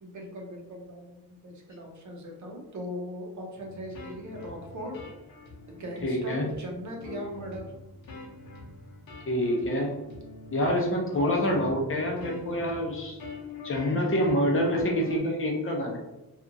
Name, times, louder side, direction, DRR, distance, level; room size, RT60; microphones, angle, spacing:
voice 1, 0.0-5.0 5.7-7.7 11.1-11.7, equal, 55° right, 0 dB, 0.7 m, -39 dB
sound 1, 3.6-15.2, left 3 dB, 65° left, 0.7 m, -45 dB
voice 2, 6.0-6.5 9.3-9.9 10.5-13.2 13.6-16.0, equal, 35° left, -1 dB, 0.5 m, -26 dB
2.8 x 2.4 x 2.5 m, 0.98 s
wide cardioid pair, 155°, 36 cm